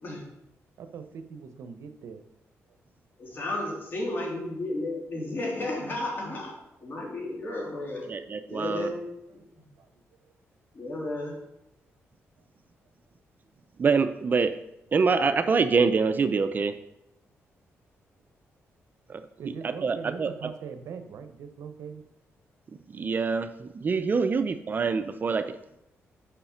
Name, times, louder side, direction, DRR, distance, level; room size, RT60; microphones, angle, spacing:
voice 1, 0.8-2.2 9.8-10.2 13.4-13.5 19.4-22.0, right 6 dB, 75° right, 8 dB, 0.8 m, -42 dB
voice 2, 3.2-6.5 6.8-8.0 8.5-9.0 9.3-9.7 10.7-11.3, left 2 dB, 45° left, -2 dB, 3.0 m, -33 dB
voice 3, 8.1-8.9 13.8-14.5 14.9-16.7 19.1-19.2 19.8-20.3 22.9-25.5, right 5 dB, 40° right, 10 dB, 0.4 m, -25 dB
6.8 x 5.7 x 5.7 m, 0.86 s
cardioid pair, 105°, 5 cm